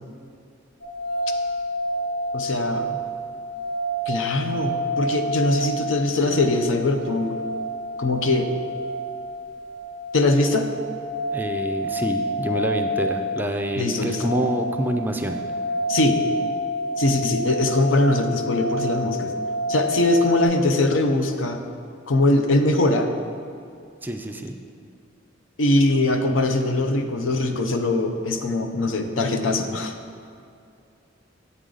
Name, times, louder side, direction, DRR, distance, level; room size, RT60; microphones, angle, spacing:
sound 1, 0.8-20.5, equal, 45° left, 1.6 m, -29 dB
voice 1, 2.3-3.0 4.1-7.4 8.0-8.5 10.1-10.7 13.8-14.3 15.9-16.2 17.0-19.3 19.7-21.6 22.1-23.1 25.6-29.9, left 2 dB, 75° left, 6 dB, 0.6 m, -22 dB
voice 2, 11.3-15.4 24.0-24.5, right 1 dB, 10° right, 5 dB, 0.4 m, -27 dB
8.3 x 6.4 x 3.8 m, 2.4 s
head